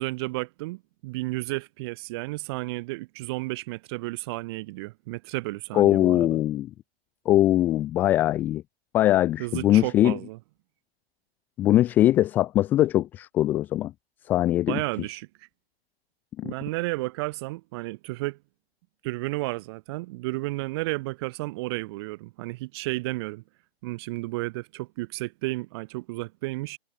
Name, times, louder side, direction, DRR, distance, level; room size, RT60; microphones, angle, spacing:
voice 1, 0.0-6.4 9.4-10.4 14.7-15.5 16.4-18.4 19.0-23.4 23.8-26.8, right 22 dB, 25° right, 2.8 m, -32 dB
voice 2, 5.7-6.7 7.3-8.6 8.9-10.2 11.6-13.9 14.3-14.8 16.4-16.5, left 13 dB, 5° left, 0.6 m, -21 dB
hypercardioid pair, 155°, 31 cm